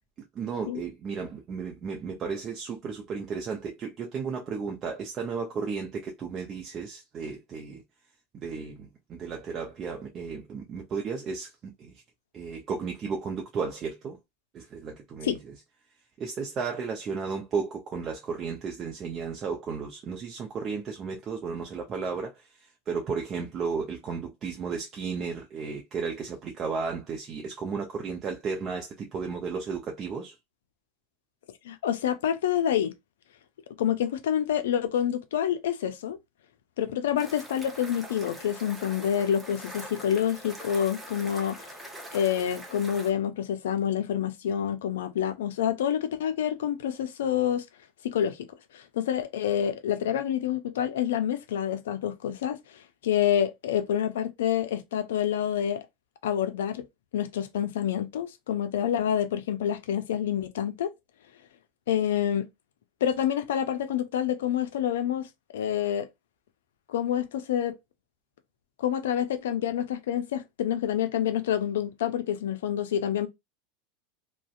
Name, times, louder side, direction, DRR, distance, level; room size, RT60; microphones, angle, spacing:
voice 1, 0.3-7.8 8.3-12.0 12.3-14.2 14.5-15.5 16.2-30.4, right 5 dB, 35° right, 0.5 m, -34 dB
voice 2, 31.6-32.9 33.8-36.2 36.8-41.7 42.1-47.6 48.0-48.4 48.7-52.6 53.0-55.8 56.2-56.8 57.1-60.9 61.9-62.5 63.0-65.3 65.5-66.1 66.9-67.7 68.8-73.3, left 9 dB, 80° left, 0.4 m, -27 dB
sound 1, 37.2-43.1, right 1 dB, 5° right, 0.7 m, -43 dB
2.5 x 2.1 x 2.4 m
hypercardioid pair, 95°, 0 cm